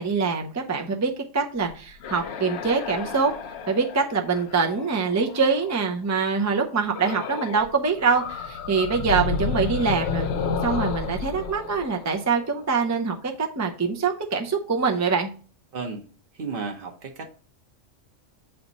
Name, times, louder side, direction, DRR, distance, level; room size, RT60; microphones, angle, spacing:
voice 1, 0.0-3.3 3.7-10.3 10.6-15.3, right 5 dB, 25° right, 0.3 m, -24 dB
sound 1, 1.9-5.8 6.9-7.7 8.0-12.8, left 5 dB, 60° left, 0.8 m, -31 dB
voice 2, 16.4-17.3, right 4 dB, 50° right, 0.9 m, -33 dB
8.2 x 3.4 x 3.9 m
omnidirectional pair, 1.3 m